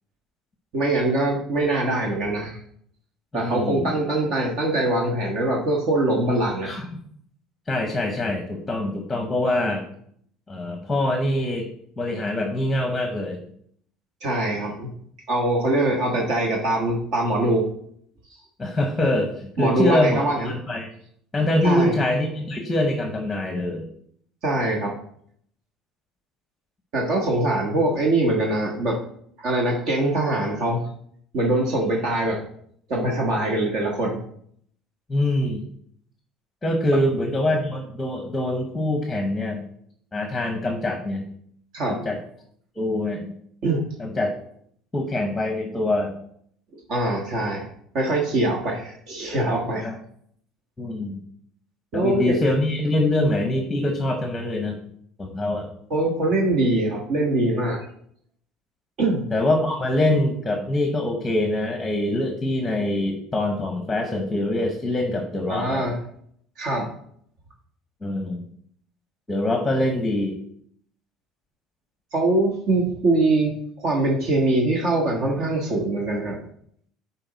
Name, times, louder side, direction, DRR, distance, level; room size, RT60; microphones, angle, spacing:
voice 1, 0.7-2.6 3.3-6.7 14.2-14.9 15.3-17.7 19.6-20.5 21.6-22.0 24.4-25.0 26.9-29.0 29.4-30.8 31.3-32.4 32.9-34.2 41.7-42.0 43.6-43.8 46.9-47.7 47.9-49.9 51.9-52.4 55.9-57.8 59.0-59.2 65.5-66.0 66.6-66.9 72.1-76.4, right 2 dB, 50° right, -1 dB, 1.4 m, -23 dB
voice 2, 3.3-3.9 6.6-7.0 7.7-9.8 10.5-11.7 12.0-13.4 18.6-20.9 21.3-23.9 35.1-35.6 36.6-39.7 40.1-41.3 41.9-42.2 42.8-43.4 44.0-44.4 44.9-46.2 49.8-50.0 50.8-51.2 51.9-54.8 55.2-55.7 59.3-65.9 68.0-68.5 69.3-70.4, left 1 dB, 10° left, 3 dB, 1.0 m, -24 dB
10.5 x 4.2 x 4.1 m, 0.66 s
cardioid pair, 160°, 0 cm